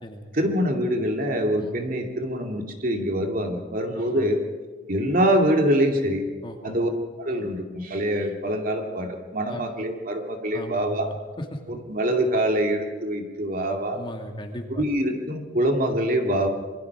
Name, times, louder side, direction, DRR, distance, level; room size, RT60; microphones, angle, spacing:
voice 1, 0.3-4.4 4.9-6.2 6.6-6.9 7.2-11.1 11.7-14.0 14.7-16.5, equal, 45° right, 3 dB, 2.5 m, -24 dB
voice 2, 3.9-4.3 6.4-6.8 9.5-9.7 10.5-11.6 13.9-14.8, equal, 25° left, 3 dB, 2.2 m, -37 dB
27.0 x 23.0 x 4.8 m, 1.4 s
head